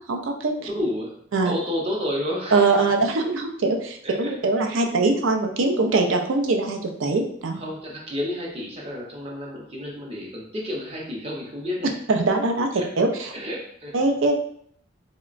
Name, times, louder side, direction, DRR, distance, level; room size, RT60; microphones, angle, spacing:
voice 1, 0.0-0.5 1.3-1.5 2.5-7.6 12.1-13.3 13.9-14.3, right 3 dB, 75° right, 3 dB, 0.4 m, -22 dB
voice 2, 0.6-2.8 3.2-3.3 4.0-4.3 7.6-12.0 12.8-12.9 13.3-14.1, left 1 dB, 30° right, -2 dB, 0.6 m, -31 dB
3.7 x 2.1 x 2.4 m, 0.64 s
head